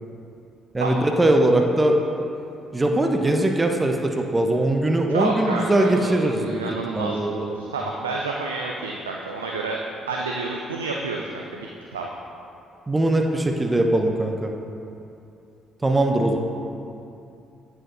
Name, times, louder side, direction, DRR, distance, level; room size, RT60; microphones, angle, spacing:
voice 1, 0.7-2.0 2.7-6.6 6.9-7.5 12.9-14.5 15.8-16.4, right 1 dB, 20° right, 3 dB, 0.9 m, -21 dB
voice 2, 5.1-9.8 10.1-12.1, right 3 dB, 90° right, 0 dB, 0.4 m, -29 dB
9.1 x 6.9 x 4.0 m, 2.6 s
hypercardioid pair, 45°, 0 cm